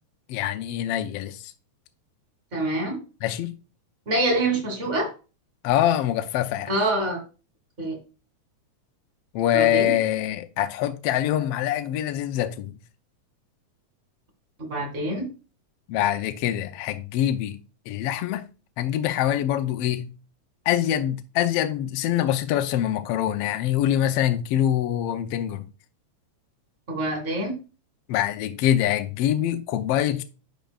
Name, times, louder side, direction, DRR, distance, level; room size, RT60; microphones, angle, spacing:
voice 1, 0.3-1.5 3.2-3.6 5.6-6.7 9.3-12.7 15.9-17.6 17.9-18.4 18.8-20.1 20.7-25.7 28.1-30.2, left 11 dB, 80° left, 1.4 m, -24 dB
voice 2, 2.5-3.0 4.1-5.1 6.7-7.2 7.8-8.0 9.5-9.9 14.6-15.2 26.9-27.6, right 1 dB, 25° right, 2.1 m, -25 dB
10.5 x 5.1 x 2.3 m
omnidirectional pair, 3.4 m